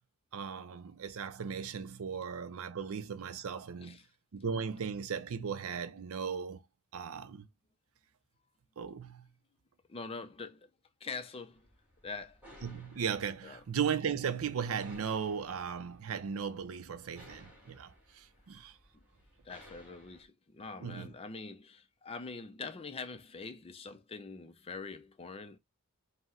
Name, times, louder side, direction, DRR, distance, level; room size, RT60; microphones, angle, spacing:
voice 1, 0.3-4.0 4.3-6.6 6.9-7.5 8.8-9.3 12.6-18.7 20.8-21.1, right 7 dB, 65° right, 0.5 m, -37 dB
voice 2, 9.9-10.7 11.0-11.7 12.0-12.4 13.4-13.6 19.4-25.6, left 4 dB, 25° left, 0.4 m, -44 dB
sound 1, 11.5-20.2, equal, 5° right, 1.6 m, -59 dB
5.1 x 2.1 x 3.6 m
head